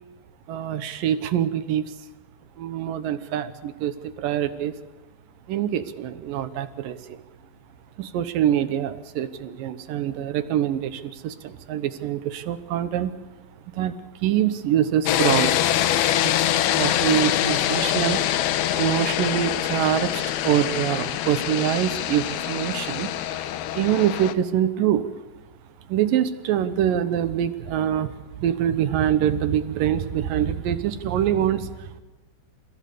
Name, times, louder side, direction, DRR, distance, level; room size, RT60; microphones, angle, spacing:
voice 1, 0.5-2.0 2.6-4.7 5.5-7.2 8.0-13.1 13.7-15.7 16.2-18.3 18.8-23.1 23.7-25.2 25.9-32.0, right 10 dB, 70° right, 11 dB, 2.6 m, -25 dB
sound 1, 15.0-24.3, left 12 dB, 80° left, 2.8 m, -24 dB
29.0 x 15.5 x 6.9 m, 1.2 s
omnidirectional pair, 4.3 m